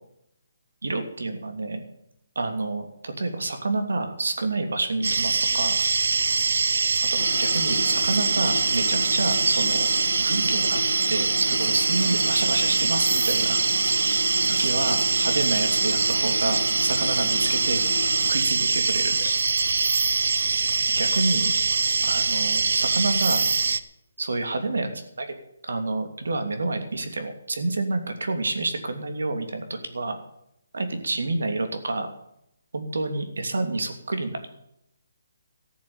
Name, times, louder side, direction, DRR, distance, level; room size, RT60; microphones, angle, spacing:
voice 1, 0.8-1.8 2.3-5.8 7.1-9.9 10.2-10.8 11.1-13.6 14.5-17.8 18.3-19.1 21.0-21.5 22.0-23.4 24.2-24.9 25.2-25.3 25.6-30.2 30.7-32.1 32.7-34.5, right 2 dB, 85° right, 6 dB, 2.9 m, -28 dB
sound 1, 5.0-23.8, right 4 dB, 65° right, 0.8 m, -23 dB
sound 2, 7.2-18.3, left 4 dB, 50° left, 2.8 m, -34 dB
14.5 x 7.7 x 8.8 m, 0.77 s
hypercardioid pair, 175°, 0 cm